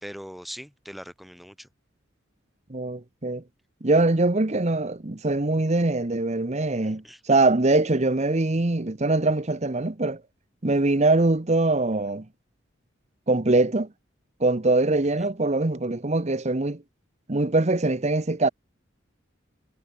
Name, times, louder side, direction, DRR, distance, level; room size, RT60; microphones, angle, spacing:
voice 1, 0.0-1.7 6.8-7.2 15.2-15.3, equal, ahead, 1.8 m, -41 dB
voice 2, 2.7-3.4 3.8-10.2 10.6-12.3 13.3-13.9 14.4-16.8 17.3-18.5, right 2 dB, 35° right, 1.0 m, -23 dB
head